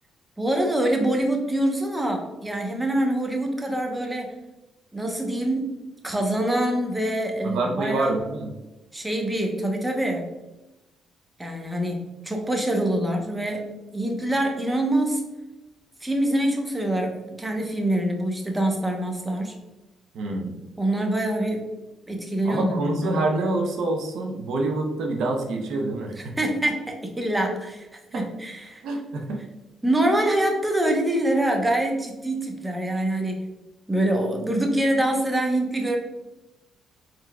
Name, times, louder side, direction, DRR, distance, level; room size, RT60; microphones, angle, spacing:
voice 1, 0.4-4.3 4.9-5.8 6.0-8.2 8.9-10.3 11.4-13.7 13.9-15.2 16.0-19.5 20.8-21.7 22.1-23.3 26.4-28.8 29.8-33.5 33.9-36.0, right 1 dB, 15° right, 2 dB, 0.8 m, -25 dB
voice 2, 7.4-8.5 20.1-20.6 22.4-26.2 28.1-28.2 28.8-29.4, right 2 dB, 80° right, 2 dB, 0.6 m, -26 dB
4.4 x 3.8 x 2.2 m, 1.0 s
cardioid pair, 90°, 0 cm